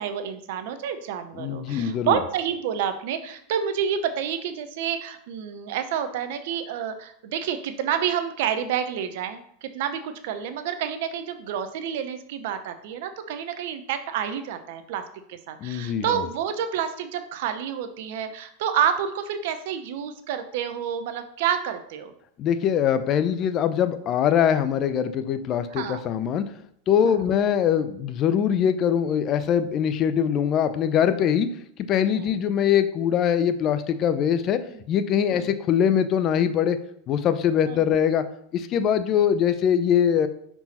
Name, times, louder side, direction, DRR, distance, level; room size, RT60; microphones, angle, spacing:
voice 1, 0.0-15.0 15.3-22.1 25.7-26.0 27.0-27.1 32.0-32.3 34.7-34.8 35.3-35.5 37.7-37.8, right 8 dB, 65° right, 10 dB, 0.7 m, -29 dB
voice 2, 1.3-2.2 15.6-16.2 22.4-26.4 26.9-31.5 31.9-34.6 34.9-36.8 37.1-38.2 38.5-40.3, left 8 dB, 40° left, 12 dB, 0.6 m, -22 dB
5.6 x 4.6 x 4.2 m, 0.70 s
hypercardioid pair, 95°, 0 cm